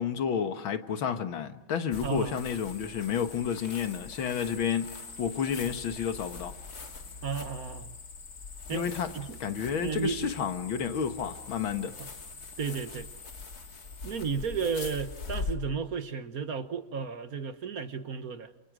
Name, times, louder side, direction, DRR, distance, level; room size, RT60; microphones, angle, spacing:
voice 1, 0.0-6.5 8.7-9.1 9.4-12.0, left 7 dB, 90° left, 2.2 m, -31 dB
sound 1, 1.9-15.5, left 4 dB, 50° left, 2.7 m, -42 dB
voice 2, 2.0-2.4 7.2-8.0 8.7-8.8 9.1-9.4 9.8-10.3 12.0-12.1 12.6-13.1 14.0-18.5, right 6 dB, 50° right, 1.6 m, -33 dB
28.5 x 28.0 x 6.2 m
omnidirectional pair, 2.1 m